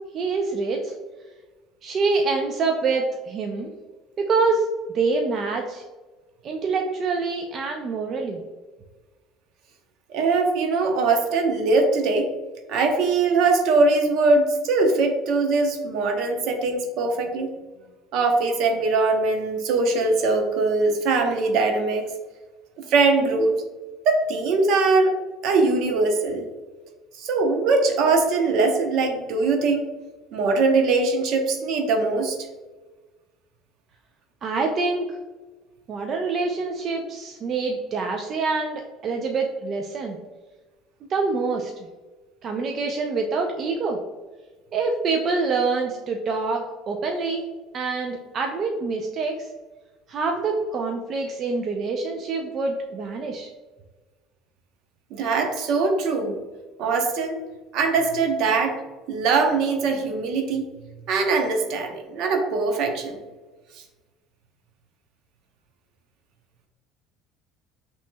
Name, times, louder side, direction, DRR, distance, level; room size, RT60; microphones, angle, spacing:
voice 1, 0.1-0.9 1.8-3.7 4.2-4.7 4.9-5.8 6.4-8.4 34.4-35.2 35.9-40.2 41.1-41.7 42.4-44.0 44.7-47.4 47.7-49.5 50.1-53.5, right 4 dB, 40° right, 2 dB, 0.5 m, -26 dB
voice 2, 10.1-12.3 12.7-17.5 18.1-22.1 22.9-23.6 24.0-25.1 25.4-26.4 27.2-29.9 30.3-32.4 55.1-56.3 56.8-57.4 57.7-58.8 59.1-60.7 61.1-63.2, right 3 dB, 65° right, 4 dB, 0.8 m, -21 dB
6.0 x 3.0 x 2.2 m, 1.3 s
cardioid pair, 125°, 0 cm